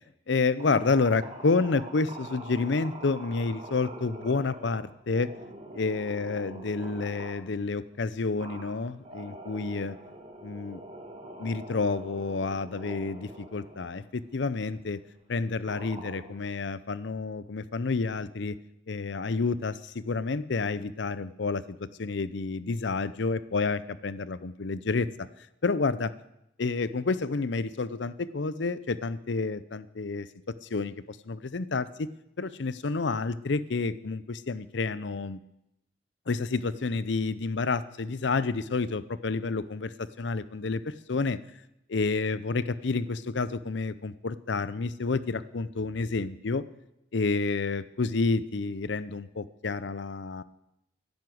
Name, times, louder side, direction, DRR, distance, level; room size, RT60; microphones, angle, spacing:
voice 1, 0.3-5.3 5.7-10.0 10.4-10.8 11.4-15.0 15.3-18.6 18.9-25.1 25.6-26.1 26.6-30.3 30.6-32.1 32.4-35.4 36.3-41.4 41.9-46.6 47.1-50.4, left 4 dB, 65° left, 15 dB, 0.6 m, -29 dB
sound 1, 0.6-7.5 8.4-14.0 14.5-14.8 15.6-16.6, right 1 dB, 30° right, 1.7 m, -44 dB
11.0 x 10.5 x 7.8 m, 0.86 s
head